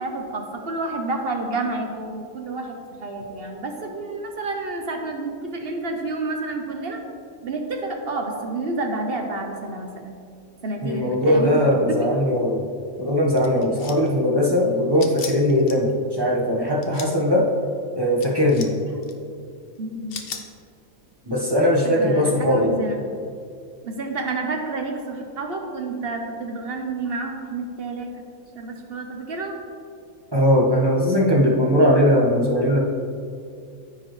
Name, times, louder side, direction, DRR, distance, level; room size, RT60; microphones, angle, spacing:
voice 1, 0.0-7.0 7.4-10.1 10.6-12.1 13.5-13.9 14.6-14.9 16.3-16.4 19.8-20.2 21.8-23.0 23.8-28.2 28.5-29.6, right 3 dB, 50° right, 3 dB, 0.9 m, -30 dB
voice 2, 10.8-12.6 13.0-17.4 17.9-18.7 21.3-22.8 30.3-32.8, equal, 20° right, -4 dB, 1.2 m, -19 dB
sound 1, 13.4-14.1 15.0-15.7 16.7-17.1 18.2-18.7 19.0-19.1 20.1-20.4, left 6 dB, 50° left, 0.8 m, -35 dB
14.5 x 4.9 x 3.2 m, 2.3 s
omnidirectional pair, 1.5 m